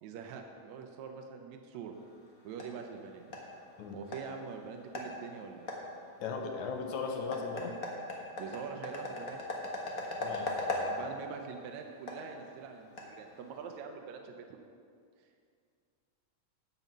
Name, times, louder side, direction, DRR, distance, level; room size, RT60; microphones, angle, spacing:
voice 1, 0.0-1.9 2.4-3.2 3.9-5.7 8.4-9.4 10.9-14.6, right 6 dB, 75° right, 4 dB, 2.0 m, -44 dB
sound 1, 1.9-13.8, left 2 dB, 50° left, 0.9 m, -41 dB
voice 2, 6.2-7.8 10.2-11.0, left 4 dB, 75° left, 2 dB, 2.2 m, -37 dB
10.5 x 5.6 x 7.3 m, 2.3 s
omnidirectional pair, 3.5 m